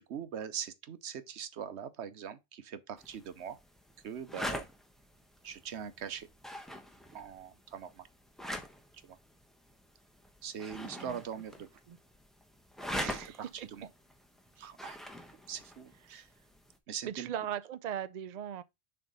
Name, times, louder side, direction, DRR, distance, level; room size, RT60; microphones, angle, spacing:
voice 1, 0.0-3.6 4.0-4.7 5.4-6.3 7.1-8.1 9.0-9.2 10.4-11.7 12.9-13.9 14.6-15.0 15.5-16.3 16.9-17.3, right 8 dB, 80° right, 1.1 m, -42 dB
sound 1, 3.0-16.8, equal, ahead, 0.9 m, -44 dB
voice 2, 12.9-13.7 16.1-16.2 17.0-18.6, right 10 dB, 55° right, 0.5 m, -39 dB
6.8 x 3.4 x 5.3 m
omnidirectional pair, 1.1 m